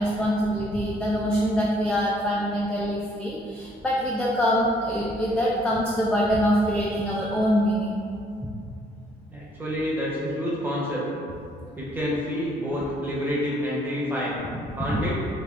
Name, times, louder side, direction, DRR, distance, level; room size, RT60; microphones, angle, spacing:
voice 1, 0.0-8.0 14.9-15.0, equal, 5° left, -4 dB, 0.3 m, -24 dB
voice 2, 9.3-11.1 11.8-15.2, equal, 10° right, -6 dB, 0.9 m, -28 dB
3.3 x 3.2 x 2.4 m, 2.4 s
cardioid pair, 110°, 17 cm